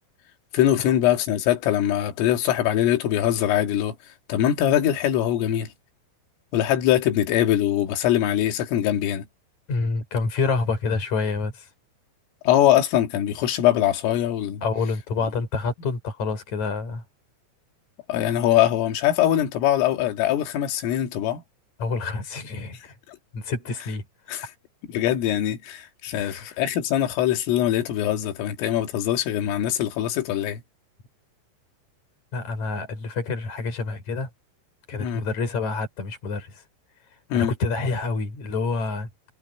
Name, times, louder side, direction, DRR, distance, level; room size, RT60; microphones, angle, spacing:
voice 1, 0.5-4.0 4.3-5.7 6.5-9.3 12.4-14.6 18.1-21.4 23.1-23.2 24.3-24.5 24.9-30.6 35.0-35.2 37.3-37.5, left 11 dB, 85° left, 4.9 m, -22 dB
voice 2, 9.7-11.6 14.6-17.0 21.8-22.8 23.3-24.0 26.1-26.5 32.3-34.3 34.9-36.5 37.3-39.1, left 4 dB, 35° left, 6.6 m, -27 dB
omnidirectional pair, 5.7 m